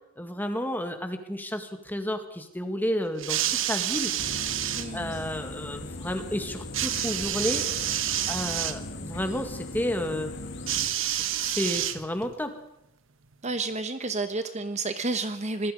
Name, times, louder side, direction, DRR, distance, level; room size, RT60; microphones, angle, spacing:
voice 1, 0.2-4.1 4.9-7.6 8.3-10.3 11.0-12.5, equal, 10° left, 6 dB, 2.0 m, -31 dB
sound 1, 3.2-4.9 6.7-8.8 10.7-12.4 13.3-13.4, right 11 dB, 65° right, 1.2 m, -29 dB
sound 2, 4.2-10.9, left 2 dB, 60° left, 2.9 m, -39 dB
voice 2, 4.7-5.2 13.4-15.7, right 3 dB, 35° right, 9 dB, 1.1 m, -30 dB
25.5 x 20.5 x 5.1 m, 0.82 s
head